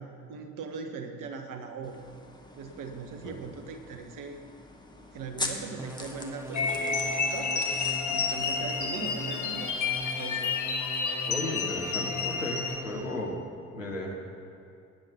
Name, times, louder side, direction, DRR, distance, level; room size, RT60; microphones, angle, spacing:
voice 1, 0.0-2.0 2.5-4.4 5.1-7.7 8.1-10.6, right 5 dB, 55° right, 6 dB, 1.6 m, -40 dB
sound 1, 1.8-10.1, left 2 dB, 10° left, 2.0 m, -43 dB
sound 2, 5.8-13.3, right 1 dB, 5° right, 0.9 m, -42 dB
sound 3, 6.5-12.8, left 5 dB, 50° left, 1.7 m, -30 dB
voice 2, 11.3-13.4 13.7-14.1, left 1 dB, 85° left, 0 dB, 1.5 m, -35 dB
18.5 x 9.9 x 6.0 m, 2.5 s
figure-of-eight pair, 45°, 37 cm